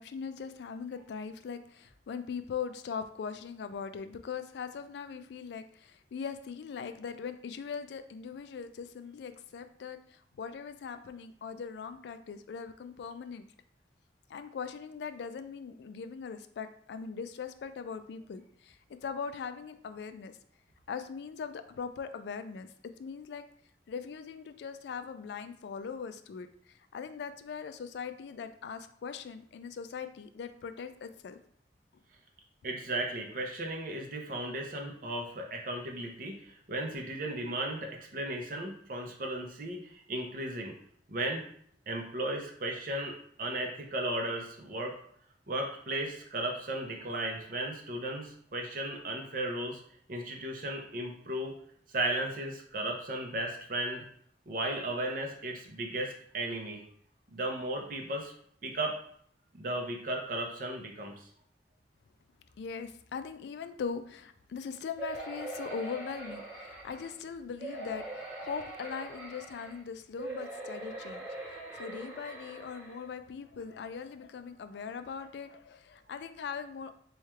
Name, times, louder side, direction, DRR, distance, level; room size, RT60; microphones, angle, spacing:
voice 1, 0.0-13.4 14.3-20.4 20.9-23.4 23.9-31.4 62.6-76.9, left 6 dB, 70° left, 9 dB, 0.3 m, -40 dB
voice 2, 32.6-40.7 41.1-41.4 41.9-44.9 45.5-49.8 50.1-51.5 51.9-54.1 54.5-56.8 57.3-58.3 58.6-59.0 59.5-61.3, right 1 dB, 50° right, 1 dB, 0.6 m, -35 dB
sound 1, 65.0-67.1 67.6-69.8 70.2-73.0 73.6-73.7 74.0-74.1, right 2 dB, 5° right, 1.1 m, -42 dB
3.2 x 2.3 x 4.3 m, 0.63 s
head